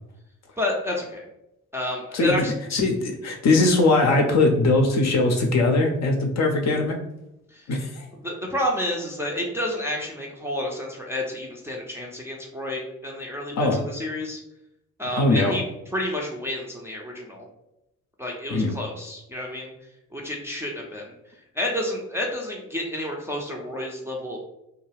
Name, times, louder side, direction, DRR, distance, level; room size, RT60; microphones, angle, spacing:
voice 1, 0.6-1.2 1.7-2.5 7.5-7.7 8.2-14.4 15.0-15.6 15.9-17.5 18.2-19.7 20.1-21.1 21.5-24.4, left 1 dB, 5° right, -2 dB, 0.5 m, -30 dB
voice 2, 2.1-2.4 2.7-7.0 7.7-8.1 13.6-13.8 15.2-15.6 18.5-18.7, left 2 dB, 40° left, 2 dB, 0.6 m, -20 dB
2.3 x 2.2 x 3.3 m, 0.86 s
figure-of-eight pair, 45°, 40 cm